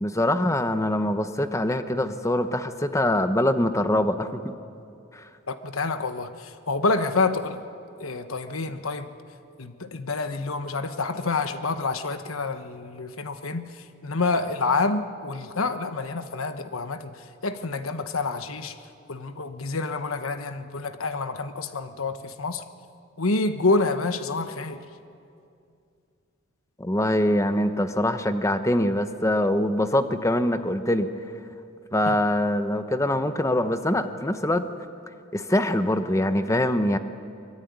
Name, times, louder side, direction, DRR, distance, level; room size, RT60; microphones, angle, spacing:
voice 1, 0.0-4.5 5.1-5.2 26.8-31.1 31.9-34.6 35.3-37.0, left 1 dB, 15° left, 9 dB, 1.0 m, -24 dB
voice 2, 5.5-7.6 8.0-9.1 9.6-18.8 19.1-22.6 23.2-24.8 32.0-32.1, left 3 dB, 85° left, 9 dB, 1.2 m, -28 dB
23.5 x 22.0 x 9.5 m, 2.5 s
head